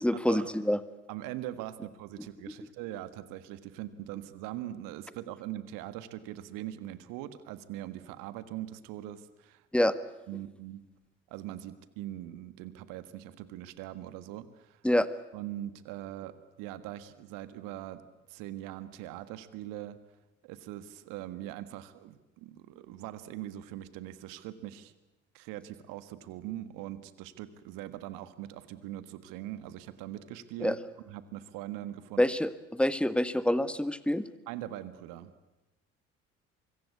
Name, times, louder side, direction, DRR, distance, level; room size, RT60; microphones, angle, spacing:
voice 1, 0.0-0.8 9.7-9.9 14.8-15.1 30.6-30.8 32.2-34.2, left 1 dB, 5° left, 13 dB, 1.6 m, -26 dB
voice 2, 1.1-9.6 10.3-10.8 11.3-14.8 15.3-18.0 18.3-20.0 20.4-24.9 25.3-30.8 31.0-32.2 34.5-35.3, right 13 dB, 65° right, 13 dB, 1.7 m, -41 dB
24.5 x 22.5 x 8.5 m, 1.0 s
figure-of-eight pair, 50°, 35 cm